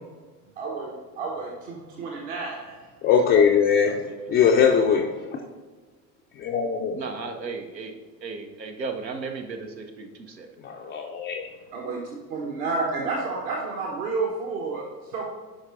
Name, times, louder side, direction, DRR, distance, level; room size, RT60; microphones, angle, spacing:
voice 1, 0.6-2.8 11.7-12.0 12.3-14.9 15.1-15.3, right 3 dB, 60° right, -2 dB, 1.2 m, -30 dB
voice 2, 3.0-3.9 4.3-5.4 6.4-7.0 10.6-11.5, left 7 dB, 25° left, 0 dB, 0.3 m, -21 dB
voice 3, 6.9-7.9 8.2-10.5, right 4 dB, 85° right, 5 dB, 0.8 m, -35 dB
10.0 x 4.9 x 2.6 m, 1.4 s
figure-of-eight pair, 65°, 50 cm